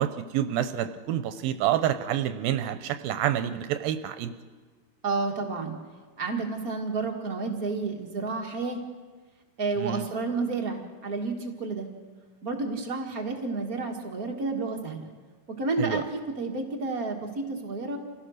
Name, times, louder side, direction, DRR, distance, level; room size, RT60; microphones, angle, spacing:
voice 1, 0.0-4.3 9.8-10.1 15.8-16.0, right 11 dB, 80° right, 10 dB, 2.4 m, -28 dB
voice 2, 5.0-5.8 6.2-8.8 9.6-11.9 12.4-15.1 15.5-18.0, right 3 dB, 45° right, 2 dB, 1.1 m, -30 dB
27.5 x 16.5 x 6.5 m, 1.4 s
omnidirectional pair, 4.4 m